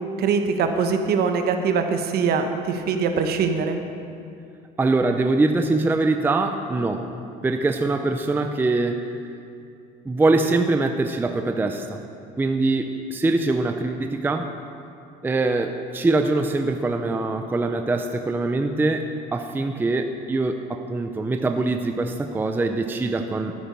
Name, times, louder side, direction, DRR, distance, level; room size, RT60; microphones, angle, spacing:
voice 1, 0.2-3.8, right 5 dB, 55° right, 6 dB, 1.1 m, -22 dB
voice 2, 4.8-7.1 7.4-9.1 10.1-12.0 12.4-14.5 15.2-19.1 19.3-23.5, right 2 dB, 10° right, 6 dB, 0.5 m, -23 dB
14.0 x 8.7 x 5.3 m, 2.5 s
cardioid pair, 135°, 19 cm